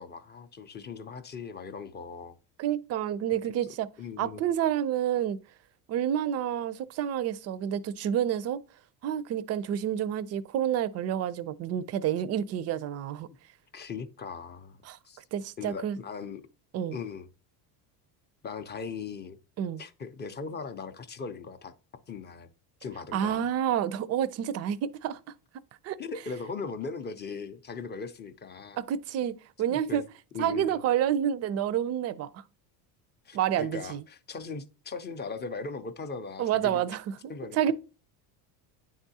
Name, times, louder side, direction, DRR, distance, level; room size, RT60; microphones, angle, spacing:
voice 1, 0.0-2.4 3.3-3.4 4.0-4.5 13.7-14.8 15.0-15.2 15.6-16.4 16.9-17.3 18.4-19.4 19.8-21.7 22.1-22.5 22.8-23.4 26.0-28.8 29.7-30.0 30.3-30.8 33.2-36.8 37.3-37.7, left 5 dB, 25° left, 0.4 m, -39 dB
voice 2, 2.6-3.9 4.2-5.4 5.9-8.6 9.0-13.3 14.9-15.0 15.3-16.0 16.7-17.0 19.6-19.8 23.1-25.2 25.8-26.0 28.8-29.3 29.6-30.0 30.4-32.4 33.3-34.0 36.4-37.7, right 10 dB, 35° right, 0.4 m, -29 dB
9.7 x 3.6 x 2.7 m
supercardioid pair, 110°, 46 cm